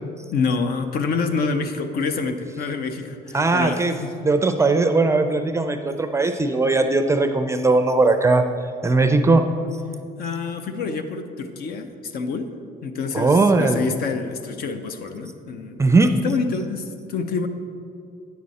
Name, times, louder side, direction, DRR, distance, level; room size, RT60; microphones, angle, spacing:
voice 1, 0.3-4.1 10.2-12.5 12.8-15.9 16.2-17.5, left 4 dB, 65° left, 8 dB, 0.7 m, -27 dB
voice 2, 3.3-3.9 4.2-8.4 8.8-9.4 13.1-13.9 15.8-16.1, right 3 dB, 15° right, 7 dB, 0.4 m, -19 dB
9.4 x 7.5 x 4.2 m, 2.5 s
cardioid pair, 110°, 17 cm